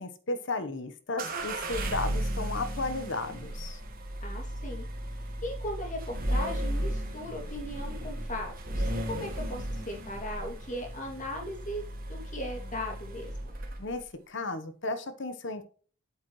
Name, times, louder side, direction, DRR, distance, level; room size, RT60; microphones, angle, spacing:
voice 1, 0.0-3.8 13.8-15.6, left 2 dB, 60° left, 10 dB, 1.1 m, -34 dB
sound 1, 1.2-14.0, right 1 dB, 45° right, 1.7 m, -35 dB
voice 2, 4.2-4.9 5.4-11.8 12.1-13.5, left 1 dB, 35° left, 1 dB, 2.5 m, -38 dB
8.5 x 7.3 x 3.1 m, 0.41 s
head